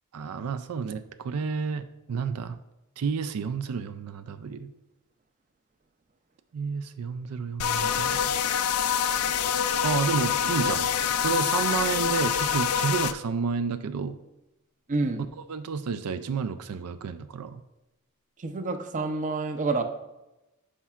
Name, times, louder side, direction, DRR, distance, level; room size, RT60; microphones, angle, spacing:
voice 1, 0.1-2.6 3.0-4.7 6.5-8.3 9.8-10.9 11.2-14.2 15.5-17.6, right 5 dB, 90° right, 11 dB, 0.4 m, -30 dB
sound 1, 7.6-13.1, left 8 dB, 75° left, 0.3 m, -26 dB
voice 2, 14.9-15.2 18.4-19.8, right 3 dB, 35° right, 8 dB, 0.5 m, -28 dB
9.9 x 5.6 x 2.4 m, 0.96 s
head